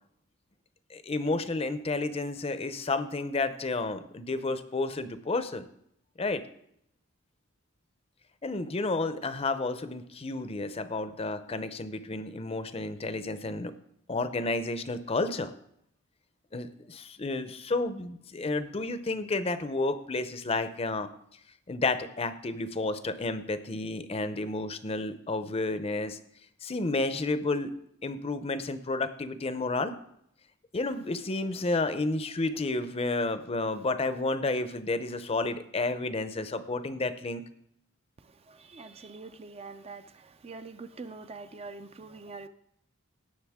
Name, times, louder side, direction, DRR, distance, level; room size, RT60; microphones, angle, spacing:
voice 1, 0.9-5.7 6.2-6.4 8.4-13.7 14.1-15.5 16.5-21.1 21.7-26.2 26.6-27.7 28.0-29.9 30.7-37.4, left 3 dB, 30° left, 0.6 m, -31 dB
voice 2, 38.2-42.5, right 3 dB, 30° right, 0.4 m, -44 dB
17.0 x 6.5 x 3.6 m
head